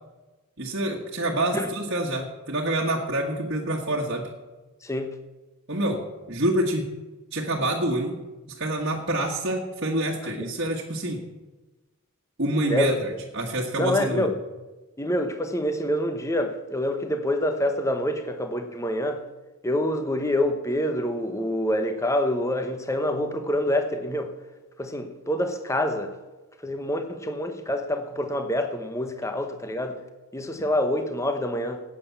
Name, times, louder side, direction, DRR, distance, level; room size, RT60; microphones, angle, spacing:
voice 1, 0.6-4.3 5.7-6.9 7.3-8.2 8.6-11.2 12.4-14.3, right 1 dB, 50° right, -2 dB, 1.6 m, -27 dB
voice 2, 4.8-5.2 10.2-10.5 12.7-12.9 13.8-14.4 15.0-19.2 19.6-24.3 24.8-26.1 26.6-30.0 30.3-31.8, left 1 dB, 15° left, 7 dB, 0.9 m, -26 dB
13.0 x 8.9 x 7.1 m, 1.1 s
head